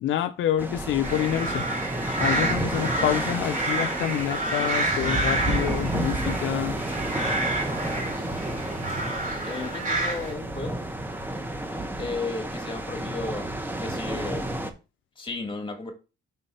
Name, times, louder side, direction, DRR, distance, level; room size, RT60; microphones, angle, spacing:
voice 1, 0.0-1.7 2.2-6.8, left 11 dB, 75° left, 0.5 m, -27 dB
sound 1, 0.6-14.7, right 1 dB, 10° right, 0.9 m, -31 dB
sound 2, 1.0-10.3, right 1 dB, 40° right, 2.6 m, -29 dB
voice 2, 9.4-10.8 11.7-13.5 13.8-14.5 15.2-15.9, left 3 dB, 25° left, 1.8 m, -34 dB
5.6 x 3.8 x 5.3 m
cardioid pair, 115°, 20 cm